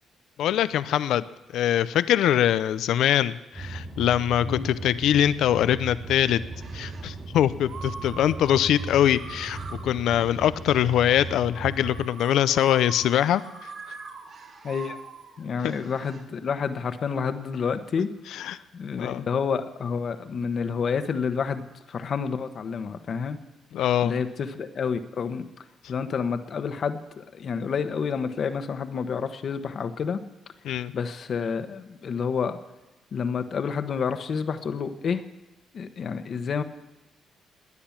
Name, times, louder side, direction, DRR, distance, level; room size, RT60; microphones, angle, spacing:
voice 1, 0.4-1.3 1.5-6.4 6.7-9.6 9.8-13.7 18.3-18.6 19.0-19.2 23.7-24.1 30.6-30.9, left 11 dB, 80° left, 15 dB, 0.6 m, -23 dB
sound 1, 3.5-12.0, right 3 dB, 25° right, 2.6 m, -37 dB
sound 2, 6.5-7.1 7.6-16.2, right 4 dB, 55° right, 2.3 m, -43 dB
voice 2, 14.6-15.0 15.4-18.1 18.4-23.4 24.0-25.5 25.9-30.2 30.9-32.6 33.1-35.2 35.7-36.6, left 6 dB, 55° left, 10 dB, 1.2 m, -29 dB
19.0 x 10.0 x 7.3 m, 1.1 s
cardioid pair, 90°, 0 cm